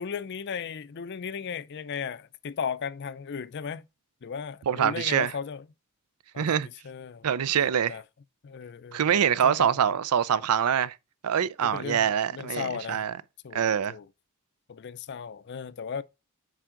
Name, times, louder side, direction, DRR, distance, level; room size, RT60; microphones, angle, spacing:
voice 1, 0.0-3.9 4.2-5.6 6.3-7.3 7.9-8.0 8.4-9.1 9.4-9.8 11.6-13.0 13.4-14.1 14.7-16.0, left 6 dB, 50° left, 0.4 m, -36 dB
voice 2, 4.7-5.3 6.4-6.7 7.2-8.0 8.9-10.9 11.2-13.2 13.5-13.9, right 8 dB, 85° right, 0.5 m, -25 dB
9.0 x 4.7 x 3.8 m
head